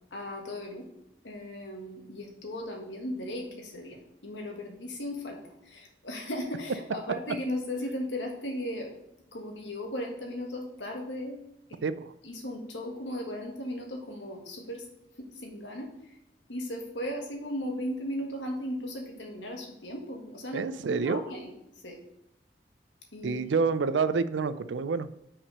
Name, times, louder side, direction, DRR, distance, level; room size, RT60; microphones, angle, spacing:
voice 1, 0.1-0.9 1.2-8.9 9.3-11.4 11.7-11.8 12.2-14.9 15.2-16.2 16.5-21.5 21.8-22.0 23.1-23.4, left 1 dB, 85° left, 2 dB, 1.6 m, -36 dB
voice 2, 11.8-12.1 20.5-21.2 23.2-25.1, right 5 dB, 90° right, 14 dB, 0.4 m, -28 dB
5.9 x 4.9 x 5.3 m, 0.83 s
head